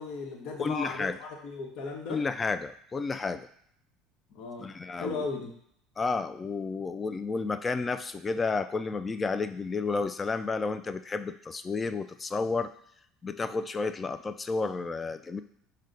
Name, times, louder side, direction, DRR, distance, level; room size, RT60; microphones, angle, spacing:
voice 1, 0.0-2.2 4.3-4.7 5.0-5.5, left 4 dB, 60° left, 1 dB, 1.0 m, -36 dB
voice 2, 0.6-1.2 2.1-3.5 4.6-5.3 6.0-12.7 13.2-15.4, left 4 dB, 25° left, 11 dB, 0.3 m, -31 dB
5.2 x 2.2 x 3.8 m, 0.70 s
hypercardioid pair, 75°, 0 cm